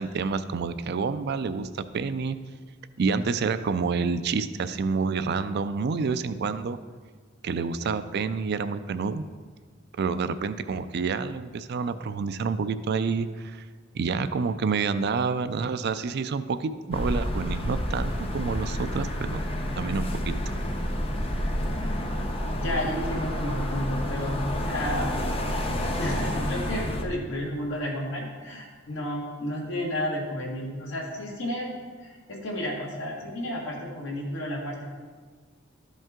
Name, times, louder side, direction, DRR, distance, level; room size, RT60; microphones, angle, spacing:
voice 1, 0.0-2.4 3.0-6.8 7.4-9.2 10.0-13.6 13.9-19.4 19.8-20.5, right 5 dB, 55° right, 12 dB, 0.4 m, -28 dB
sound 1, 16.9-27.0, equal, 30° left, 0.8 m, -29 dB
voice 2, 22.6-25.1 26.0-34.9, left 1 dB, 70° left, -2 dB, 2.0 m, -32 dB
12.5 x 5.3 x 3.7 m, 1.5 s
head